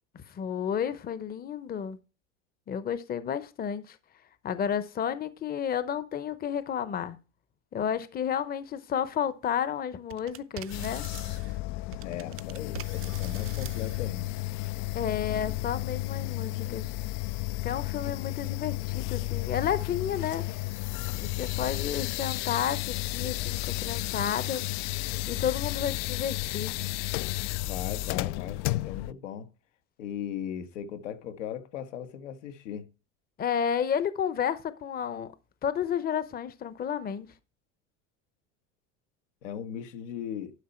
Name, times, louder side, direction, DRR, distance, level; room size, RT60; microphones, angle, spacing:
voice 1, 0.3-2.0 2.7-4.0 4.4-7.2 7.7-11.0 14.9-16.9 17.6-20.4 21.2-24.6 25.3-26.7 33.4-35.3 35.6-37.3, left 8 dB, 25° left, 0.8 m, -31 dB
sound 1, 10.1-11.6 11.9-14.1, right 13 dB, 35° right, 0.6 m, -45 dB
sound 2, 10.7-29.1, left 19 dB, 50° left, 0.4 m, -32 dB
voice 2, 12.0-14.3 27.6-29.5 30.0-32.9 39.4-40.5, left 9 dB, 80° left, 1.5 m, -38 dB
11.5 x 5.5 x 4.3 m
supercardioid pair, 100°, 37 cm